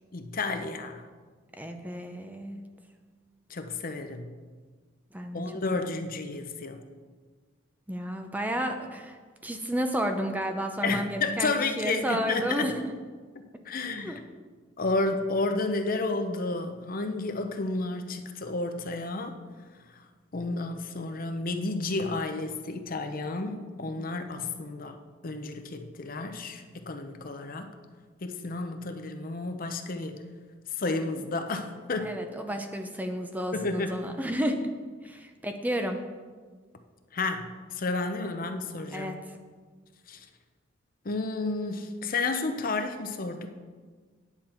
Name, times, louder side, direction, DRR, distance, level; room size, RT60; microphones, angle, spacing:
voice 1, 0.1-1.0 3.5-4.3 5.3-6.8 10.8-12.7 13.7-14.2 14.8-19.3 20.3-25.0 25.2-27.7 28.2-30.2 30.7-32.2 33.5-34.0 37.1-39.2 40.1-40.2 41.0-43.5, left 3 dB, 50° left, 7 dB, 0.7 m, -31 dB
voice 2, 1.6-2.6 5.1-5.4 5.8-5.9 7.9-12.9 14.0-14.2 24.0-24.4 32.0-34.7 35.0-36.0 38.9-39.2, equal, 10° right, 5 dB, 0.6 m, -32 dB
9.8 x 7.2 x 4.4 m, 1.5 s
head